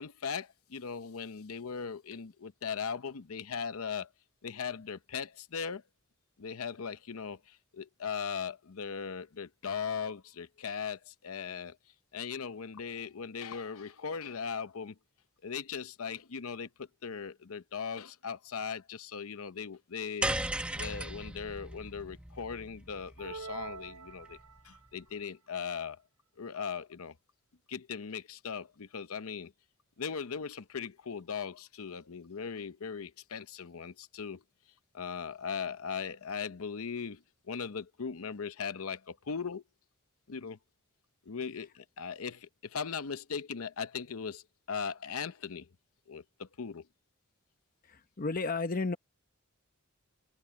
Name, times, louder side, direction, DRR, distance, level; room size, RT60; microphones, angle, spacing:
voice 1, 0.0-4.1 4.4-5.8 6.4-11.8 12.1-15.0 15.4-20.4 20.7-24.4 24.6-26.0 26.4-27.2 27.7-29.5 30.0-34.4 34.9-39.6 40.3-40.6 41.3-45.7 46.1-46.9, left 6 dB, 75° left, 0.7 m, -39 dB
sound 1, 20.2-24.6, right 1 dB, 5° right, 1.0 m, -37 dB
sound 2, 23.2-24.8, right 4 dB, 80° right, 0.6 m, -44 dB
voice 2, 47.8-49.0, left 3 dB, 40° left, 0.8 m, -33 dB
head